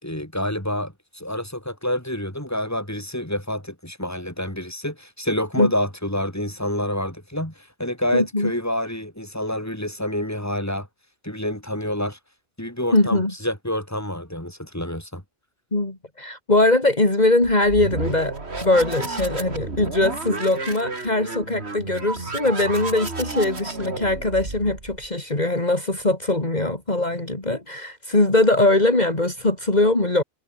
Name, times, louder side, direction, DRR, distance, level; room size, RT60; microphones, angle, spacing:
voice 1, 0.0-10.9 11.2-12.2 12.6-15.2, left 1 dB, 15° left, 5.8 m, -28 dB
voice 2, 8.1-8.5 12.9-13.3 15.7-18.3 18.6-30.2, left 2 dB, 40° left, 3.6 m, -21 dB
sound 1, 17.4-25.1, right 3 dB, 80° right, 3.2 m, -32 dB
omnidirectional pair, 1.1 m